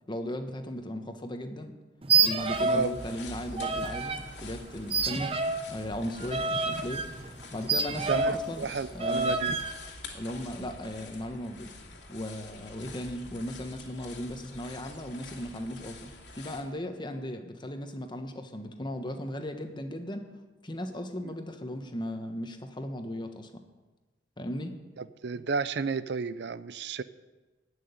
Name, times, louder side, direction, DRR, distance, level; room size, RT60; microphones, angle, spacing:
voice 1, 0.0-1.7 2.2-5.3 5.7-9.4 10.1-11.7 12.1-20.2 20.6-23.5 24.4-24.7, equal, 25° left, 6 dB, 1.2 m, -37 dB
sound 1, 2.0-2.9 3.2-4.2 4.9-8.5 9.0-9.7, right 4 dB, 30° right, 0.9 m, -28 dB
sound 2, 2.4-16.6, left 2 dB, 75° left, 2.4 m, -46 dB
voice 2, 8.1-9.6 21.2-21.3 25.0-27.0, right 5 dB, 65° right, 15 dB, 0.5 m, -32 dB
14.5 x 6.4 x 9.6 m, 1.2 s
head